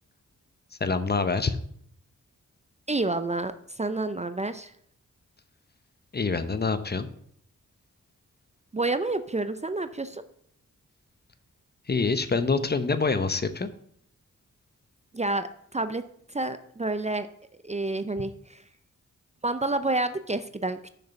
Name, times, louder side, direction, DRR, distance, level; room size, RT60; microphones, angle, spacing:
voice 1, 0.7-1.6 6.1-7.1 11.9-13.7, left 4 dB, 30° left, 11 dB, 0.8 m, -26 dB
voice 2, 2.9-4.7 8.7-10.2 15.1-16.0 16.3-17.3 17.6-18.6 19.4-20.8, right 2 dB, 20° right, 11 dB, 0.6 m, -29 dB
6.7 x 6.5 x 5.8 m, 0.66 s
cardioid pair, 50°, 32 cm